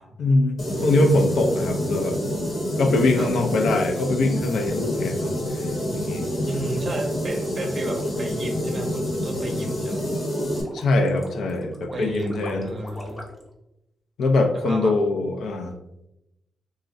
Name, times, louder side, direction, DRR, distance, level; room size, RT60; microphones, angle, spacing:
voice 1, 0.2-2.2 2.8-6.3 7.6-7.7 10.7-12.7 14.2-15.7, left 2 dB, 75° left, 5 dB, 0.4 m, -23 dB
sound 1, 0.6-10.6, equal, 55° left, 0.9 m, -27 dB
voice 2, 6.5-10.0 11.9-13.2 14.6-14.9, right 2 dB, 40° right, 4 dB, 0.5 m, -33 dB
sound 2, 7.9-13.5, left 1 dB, 20° left, 0.7 m, -42 dB
3.6 x 2.0 x 2.5 m, 0.89 s
cardioid pair, 110°, 0 cm